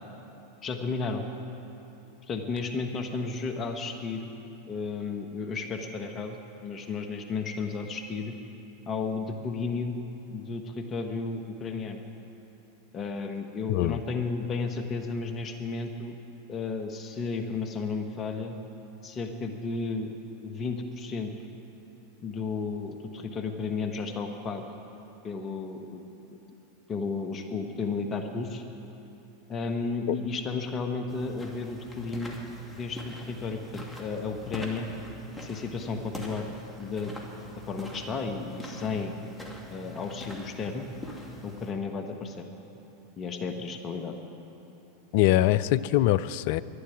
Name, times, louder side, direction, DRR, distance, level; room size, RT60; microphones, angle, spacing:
voice 1, 0.6-1.2 2.3-4.3 4.7-8.3 8.9-10.0 10.3-12.0 12.9-16.1 16.5-18.6 19.0-20.1 20.4-21.3 22.2-24.6 25.2-26.0 26.3-26.4 26.9-28.6 29.5-32.4 32.7-34.9 35.4-36.5 36.8-37.1 37.7-39.1 39.7-40.8 41.4-42.4 43.2-44.1, left 4 dB, 35° left, 5 dB, 1.3 m, -33 dB
voice 2, 13.7-14.0 30.1-30.2 45.1-46.6, left 14 dB, 60° left, 18 dB, 0.4 m, -23 dB
sound 1, 31.1-41.7, left 1 dB, 10° left, 2.5 m, -43 dB
11.5 x 11.5 x 9.7 m, 3.0 s
hypercardioid pair, 90°, 0 cm